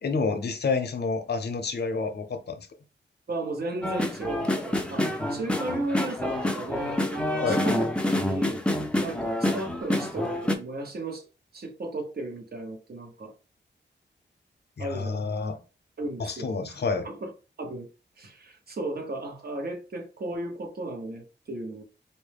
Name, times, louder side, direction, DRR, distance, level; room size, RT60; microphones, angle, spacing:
voice 1, 0.0-2.7 7.4-7.6 14.8-15.6 16.2-17.1, left 4 dB, 60° left, 0.6 m, -29 dB
voice 2, 3.3-8.6 9.0-11.3 11.5-13.3 14.8-15.2 16.0-17.3 17.6-17.9 18.2-21.8, right 2 dB, 55° right, 0.9 m, -35 dB
sound 1, 3.8-10.5, left 1 dB, 5° left, 0.5 m, -27 dB
4.2 x 2.1 x 3.3 m
wide cardioid pair, 105°, 19 cm